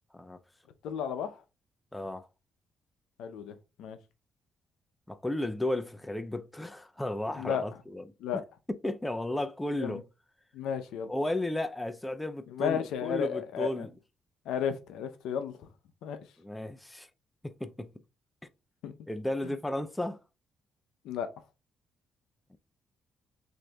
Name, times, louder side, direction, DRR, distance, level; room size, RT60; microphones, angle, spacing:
voice 1, 0.8-1.4 3.2-4.0 7.4-7.6 8.2-8.4 9.8-10.0 10.5-11.1 12.5-13.9 14.5-15.5 16.0-16.2 18.8-18.9 19.4-19.5 21.0-21.3, left 8 dB, 85° left, 0.5 m, -33 dB
voice 2, 1.9-2.3 5.1-8.0 8.3-8.4 8.8-10.0 11.1-13.9 16.4-17.1 17.4-17.9 19.1-20.2 22.5-22.6, left 1 dB, 10° left, 0.4 m, -34 dB
6.2 x 2.6 x 2.3 m
cardioid pair, 90°, 0 cm